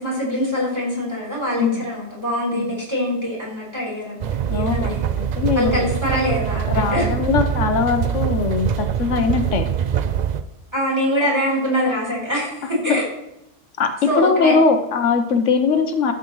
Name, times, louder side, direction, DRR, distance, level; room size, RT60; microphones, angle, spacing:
voice 1, 0.0-5.1 5.5-7.1 10.7-13.1 14.1-14.6, equal, 20° right, -5 dB, 3.8 m, -24 dB
sound 1, 4.2-10.4, right 9 dB, 75° right, 0.4 m, -23 dB
voice 2, 4.5-5.9 6.7-9.7 12.9-13.0 13.8-16.1, left 5 dB, 75° left, 7 dB, 1.1 m, -20 dB
12.5 x 7.3 x 3.0 m, 0.88 s
omnidirectional pair, 1.3 m